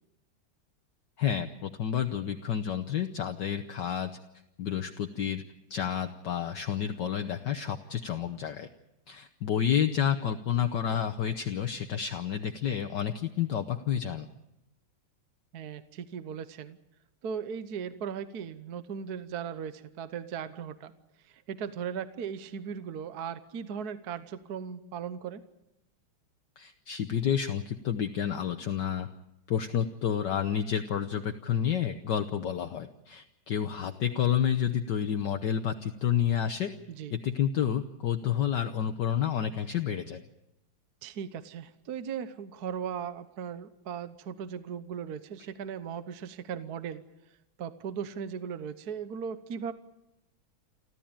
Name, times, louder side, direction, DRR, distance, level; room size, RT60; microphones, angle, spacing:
voice 1, 1.2-4.1 4.6-5.4 5.7-8.7 9.1-14.3 26.6-29.1 29.5-36.7 37.1-40.2, left 9 dB, 60° left, 6 dB, 1.5 m, -30 dB
voice 2, 15.5-16.8 17.2-20.9 21.2-25.4 36.9-37.1 41.0-47.0 47.6-49.7, right 7 dB, 55° right, 11 dB, 1.3 m, -37 dB
29.0 x 13.0 x 8.9 m, 0.87 s
omnidirectional pair, 2.3 m